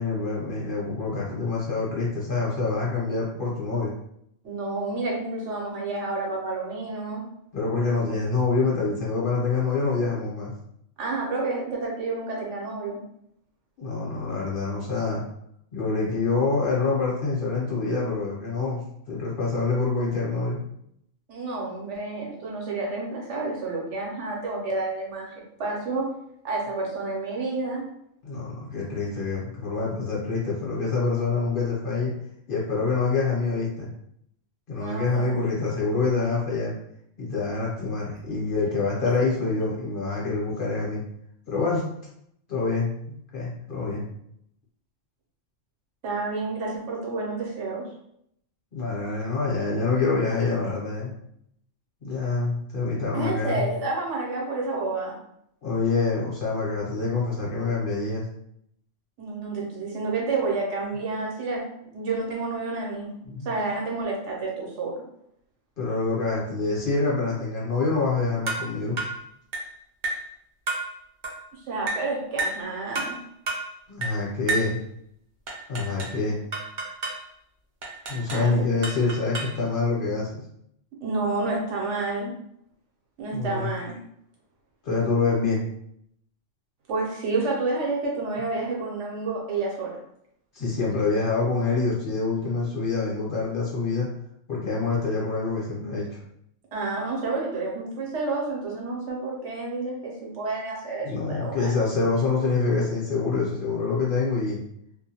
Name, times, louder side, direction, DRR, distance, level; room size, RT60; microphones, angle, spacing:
voice 1, 0.0-3.9 7.5-10.5 13.8-15.2 15.7-20.6 28.2-32.1 32.5-33.9 34.7-36.7 37.2-41.0 41.5-41.9 42.5-44.0 48.7-51.1 52.0-53.7 55.6-58.2 63.3-63.5 65.8-69.0 73.9-74.8 75.7-76.4 78.1-80.4 83.3-83.7 84.8-85.6 90.5-94.1 94.5-96.2 101.0-104.6, left 3 dB, 50° left, -5 dB, 0.9 m, -26 dB
voice 2, 4.4-7.2 11.0-13.0 21.3-25.3 25.6-26.1 26.4-27.8 34.8-35.5 46.0-47.9 53.1-55.2 59.2-63.2 63.4-65.0 71.5-73.2 78.3-78.7 81.0-82.3 83.2-84.0 86.9-90.0 96.7-101.7, right 3 dB, 70° right, -2 dB, 1.0 m, -29 dB
sound 1, 68.5-68.7 69.0-69.2 69.5-69.7 70.0-70.3 70.7-70.9 71.2-71.4 71.9-72.1 72.4-72.6 72.9-73.2 73.5-73.7 74.0-74.2 74.5-74.7 75.5-76.2 76.5-77.2 77.8-78.5 78.8-79.6, right 2 dB, 50° right, 0.6 m, -30 dB
2.4 x 2.2 x 2.8 m, 0.72 s
omnidirectional pair, 1.3 m